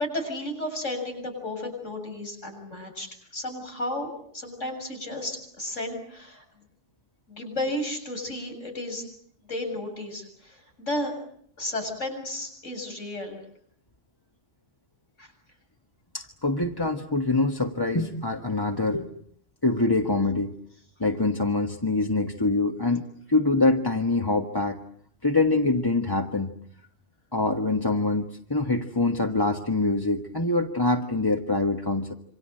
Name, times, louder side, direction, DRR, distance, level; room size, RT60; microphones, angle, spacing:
voice 1, 0.0-6.4 7.3-9.0 9.5-11.1 11.6-13.4 15.2-15.3, left 1 dB, 85° left, 4 dB, 7.8 m, -33 dB
voice 2, 16.1-19.1 19.6-20.5 21.0-23.0 23.3-24.8 25.2-26.5 27.3-32.1, left 2 dB, 20° left, 3 dB, 1.4 m, -24 dB
28.0 x 25.5 x 7.7 m, 0.66 s
omnidirectional pair, 1.2 m